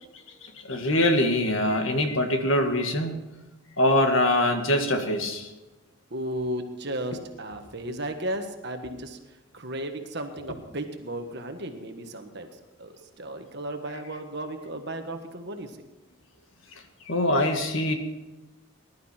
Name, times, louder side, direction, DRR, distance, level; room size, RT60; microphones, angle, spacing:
voice 1, 0.4-3.2 3.8-5.5 17.1-17.9, left 1 dB, 65° left, 5 dB, 1.8 m, -23 dB
voice 2, 6.1-9.2 9.5-12.5 12.8-15.9, right 1 dB, 50° right, 5 dB, 1.6 m, -34 dB
20.0 x 12.0 x 4.4 m, 1.0 s
head